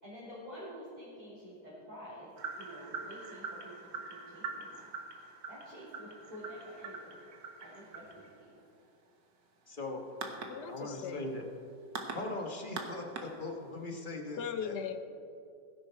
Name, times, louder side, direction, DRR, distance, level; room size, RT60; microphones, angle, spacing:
voice 1, 0.0-4.9 5.5-7.2 7.6-8.5, equal, 20° right, -10 dB, 3.3 m, -49 dB
sound 1, 2.4-13.9, right 4 dB, 70° right, 1.9 m, -44 dB
voice 2, 9.7-10.0 10.7-11.5 12.1-14.8, left 2 dB, 30° left, 2 dB, 1.2 m, -40 dB
voice 3, 10.5-11.3 14.4-15.0, left 7 dB, 70° left, 8 dB, 1.3 m, -38 dB
17.5 x 10.5 x 4.5 m, 2.6 s
omnidirectional pair, 2.0 m